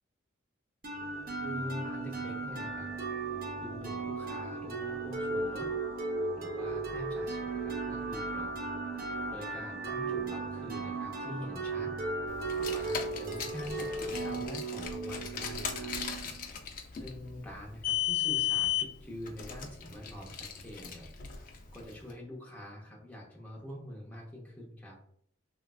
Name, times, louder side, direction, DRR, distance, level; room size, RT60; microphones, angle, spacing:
sound 1, 0.8-16.5, right 3 dB, 50° right, 0.6 m, -36 dB
voice 1, 1.4-2.9 3.3-5.7 6.4-8.6 8.9-11.9 12.2-16.0 16.9-25.0, equal, 10° left, -3 dB, 0.7 m, -45 dB
Car, 12.4-21.9, left 11 dB, 45° left, 0.4 m, -35 dB
3.1 x 2.3 x 2.3 m, 0.66 s
head